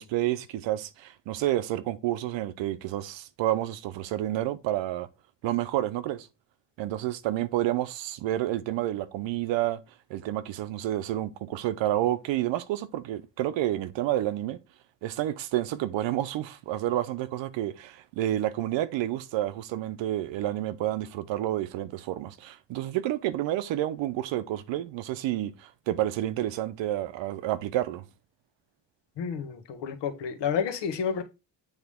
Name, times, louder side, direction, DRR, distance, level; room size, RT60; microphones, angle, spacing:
voice 1, 0.0-5.1 5.4-6.3 6.8-9.8 10.1-14.6 15.0-28.0, right 13 dB, 85° right, 0.7 m, -29 dB
voice 2, 29.2-31.2, left 7 dB, 75° left, 1.3 m, -30 dB
8.1 x 3.5 x 3.5 m
cardioid pair, 140°, 43 cm